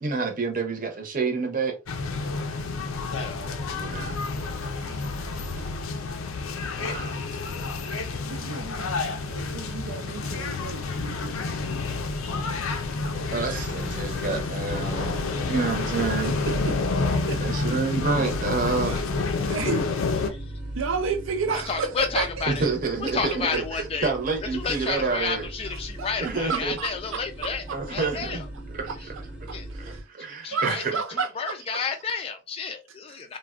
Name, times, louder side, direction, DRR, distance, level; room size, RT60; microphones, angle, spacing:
voice 1, 0.0-1.7 3.6-4.2 6.8-7.2 13.3-15.2 15.5-16.3 17.4-18.9 22.5-25.5 26.2-26.7 27.7-28.5 28.7-28.9 29.8-30.9, right 4 dB, 40° right, 0.7 m, -28 dB
sound 1, 1.9-20.3, left 3 dB, 90° left, 0.5 m, -29 dB
voice 2, 5.1-5.5 7.0-7.7 8.3-11.4 16.5-16.7 17.3-17.4 17.7-17.8 18.8-19.0 19.5-19.9 20.7-22.5 24.7-24.9 25.6-27.8 28.9-29.0 29.5-30.1 30.5-31.5 33.1-33.2, right 5 dB, 75° right, 0.5 m, -32 dB
sound 2, 13.4-30.0, right 1 dB, 5° right, 0.6 m, -39 dB
voice 3, 21.5-22.7 23.1-24.1 24.5-28.4 29.5-29.7 30.2-30.8 31.1-33.4, left 5 dB, 30° left, 0.3 m, -31 dB
3.4 x 2.2 x 2.3 m
head